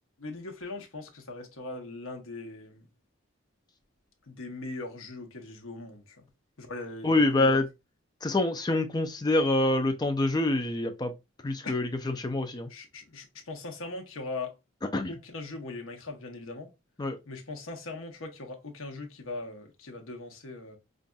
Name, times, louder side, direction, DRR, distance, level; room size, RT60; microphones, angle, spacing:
voice 1, 0.2-2.8 4.3-6.2 6.6-7.6 11.6-11.8 12.7-14.5 15.1-16.7 17.3-20.8, left 2 dB, 85° left, 0.9 m, -40 dB
voice 2, 7.0-7.6 8.2-11.1 11.4-12.7 14.9-15.1 17.0-17.2, left 2 dB, 20° left, 0.4 m, -26 dB
5.2 x 2.5 x 2.3 m
head